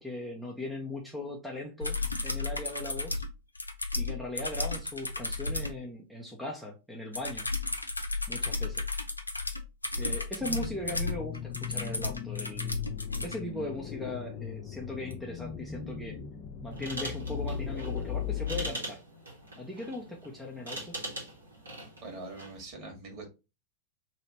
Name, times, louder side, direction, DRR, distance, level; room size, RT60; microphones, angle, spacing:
voice 1, 0.0-2.0 2.2-3.2 3.9-7.5 8.3-8.8 10.0-12.8 13.2-16.2 16.6-19.0 19.6-20.9, left 1 dB, 5° right, -1 dB, 0.8 m, -39 dB
sound 1, 1.8-5.8 7.1-13.4 15.1-15.2, left 3 dB, 80° left, 0.5 m, -34 dB
sound 2, 10.4-18.7, left 8 dB, 40° left, 0.6 m, -38 dB
sound 3, 16.7-22.6, right 1 dB, 75° right, 1.5 m, -42 dB
voice 2, 22.0-23.3, right 3 dB, 40° right, 1 dB, 1.7 m, -43 dB
3.1 x 2.9 x 4.1 m, 0.28 s
figure-of-eight pair, 90°, 0 cm